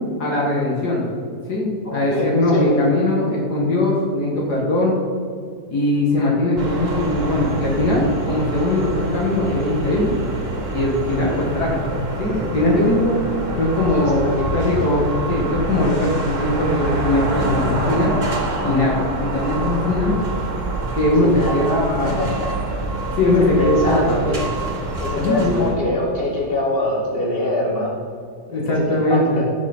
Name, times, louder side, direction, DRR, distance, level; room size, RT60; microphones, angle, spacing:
voice 1, 0.2-1.0 1.5-5.0 5.7-10.2 10.7-13.1 13.6-18.1 18.6-20.1 20.9-22.2 23.2-24.2 25.2-25.6 28.5-29.4, left 1 dB, 70° left, -4 dB, 2.4 m, -20 dB
voice 2, 1.8-2.7 13.9-14.6 19.6-19.8 21.2-21.6 22.0-22.5 23.4-24.4 25.0-28.0 28.5-28.6 28.9-29.4, left 1 dB, 35° left, -4 dB, 2.7 m, -24 dB
sound 1, 6.6-25.7, right 2 dB, 50° right, 1.9 m, -26 dB
15.5 x 6.2 x 4.4 m, 2.2 s
omnidirectional pair, 1.8 m